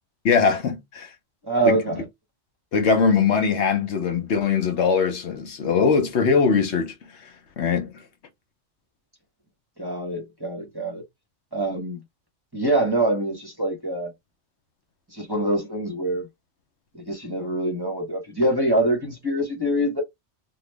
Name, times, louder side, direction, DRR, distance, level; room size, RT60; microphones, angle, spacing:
voice 1, 0.2-1.1 1.7-1.8 2.7-6.9 7.6-7.9, left 5 dB, 70° left, 1.1 m, -21 dB
voice 2, 1.4-2.0 9.8-11.0 11.5-12.0 12.5-14.1 15.1-16.3 16.9-20.0, right 1 dB, 20° right, 0.9 m, -24 dB
3.2 x 2.2 x 3.3 m
omnidirectional pair, 1.2 m